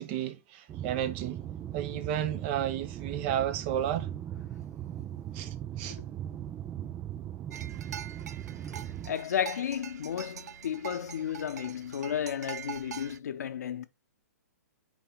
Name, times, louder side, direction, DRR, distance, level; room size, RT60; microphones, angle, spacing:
voice 1, 0.0-1.4 1.7-4.1 5.3-6.0, right 10 dB, 40° right, 0.9 m, -32 dB
sound 1, 0.7-9.1, right 11 dB, 20° right, 0.4 m, -39 dB
sound 2, 7.5-13.2, right 8 dB, 70° right, 0.5 m, -44 dB
voice 2, 9.0-13.9, left 9 dB, 70° left, 0.9 m, -33 dB
6.1 x 4.6 x 4.0 m
hypercardioid pair, 125°, 9 cm